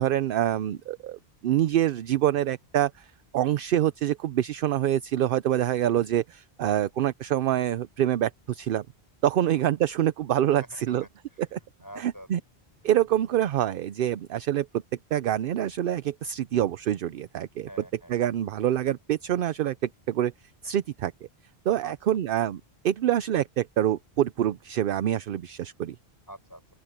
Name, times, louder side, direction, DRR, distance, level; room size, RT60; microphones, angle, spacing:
voice 1, 0.0-3.1 3.3-8.8 9.2-11.0 11.5-11.6 12.0-12.4 12.8-14.7 15.1-17.7 18.1-19.8 20.1-20.3 20.6-21.1 21.7-22.6 22.8-26.0, right 11 dB, 65° right, 0.7 m, -26 dB
voice 2, 10.6-11.4 11.8-12.3 17.7-18.1 21.8-21.9 26.3-26.6, right 1 dB, 20° left, 6.5 m, -46 dB
open air
omnidirectional pair, 1.1 m